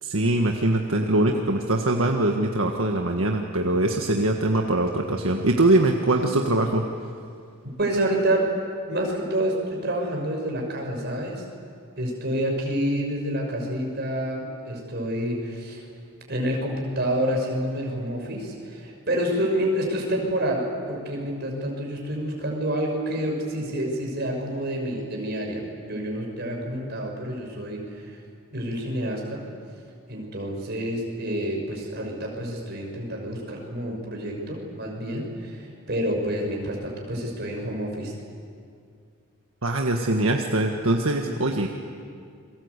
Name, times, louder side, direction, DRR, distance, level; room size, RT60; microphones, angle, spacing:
voice 1, 0.0-6.8 39.6-41.7, right 2 dB, 75° right, 2 dB, 1.6 m, -22 dB
voice 2, 7.8-8.5 8.9-11.4 12.0-15.8 16.3-28.2 28.5-29.4 30.1-38.1, right 1 dB, 50° right, 1 dB, 6.0 m, -28 dB
29.0 x 23.5 x 8.3 m, 2.3 s
head